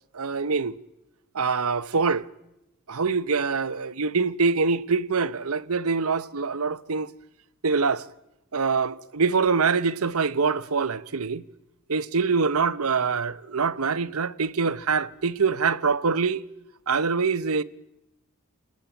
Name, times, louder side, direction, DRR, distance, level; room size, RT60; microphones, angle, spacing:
voice 1, 0.1-0.8 1.3-2.3 2.9-7.1 7.6-8.1 8.5-11.4 11.9-16.4 16.9-17.6, right 5 dB, 80° right, 0.9 m, -24 dB
28.5 x 19.0 x 9.0 m
head